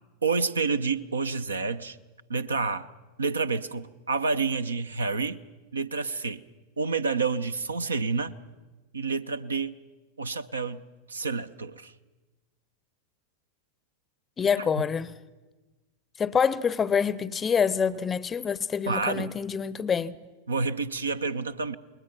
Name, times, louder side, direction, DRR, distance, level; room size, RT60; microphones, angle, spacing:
voice 1, 0.2-2.0 2.3-2.9 3.2-5.4 5.7-6.4 6.8-8.3 8.9-9.7 10.2-10.8 11.1-11.9 14.6-14.7 18.9-19.3 20.5-21.7, right 4 dB, 75° right, 0.7 m, -29 dB
voice 2, 14.4-15.1 16.2-20.2, left 6 dB, 20° left, 0.6 m, -26 dB
27.5 x 21.0 x 6.0 m
figure-of-eight pair, 90°, 0 cm